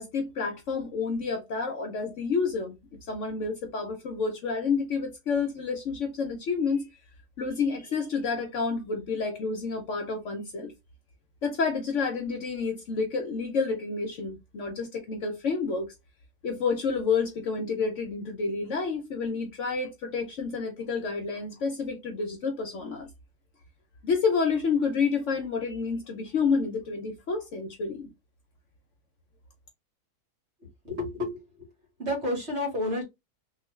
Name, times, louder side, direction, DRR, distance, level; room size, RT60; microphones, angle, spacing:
voice 1, 0.0-2.8 3.1-6.9 7.4-10.7 11.4-15.9 16.4-23.1 24.0-28.1, left 5 dB, 60° left, 0.9 m, -29 dB
voice 2, 30.8-31.7 32.0-33.0, left 1 dB, 45° right, 1.7 m, -30 dB
3.2 x 2.5 x 3.1 m
omnidirectional pair, 1.6 m